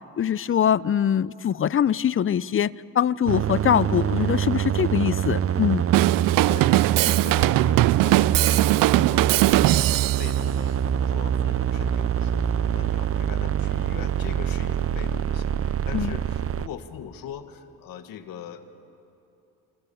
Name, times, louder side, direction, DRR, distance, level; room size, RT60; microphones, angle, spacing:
voice 1, 0.2-5.8 15.9-16.2, left 9 dB, 40° left, 20 dB, 0.6 m, -23 dB
sound 1, 3.3-16.7, right 9 dB, 40° right, 0.7 m, -25 dB
Drum kit / Drum, 5.9-10.3, right 18 dB, 70° right, 0.5 m, -20 dB
voice 2, 6.5-6.8 7.0-18.6, left 9 dB, 75° left, 8 dB, 1.9 m, -41 dB
26.5 x 26.0 x 7.1 m, 2.9 s
supercardioid pair, 70°, 34 cm